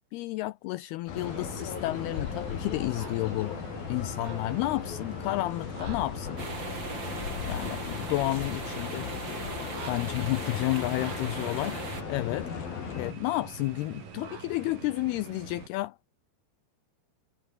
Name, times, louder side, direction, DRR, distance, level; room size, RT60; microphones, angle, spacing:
voice 1, 0.1-3.6 3.9-6.4 7.0-7.1 7.4-9.1 9.9-12.5 12.9-16.0, left 18 dB, 85° left, 2.3 m, -31 dB
sound 1, 1.1-13.1, left 9 dB, 55° left, 4.1 m, -37 dB
sound 2, 1.1-15.7, right 6 dB, 50° right, 5.4 m, -44 dB
sound 3, 6.4-12.0, right 3 dB, 25° right, 4.7 m, -39 dB
omnidirectional pair, 5.2 m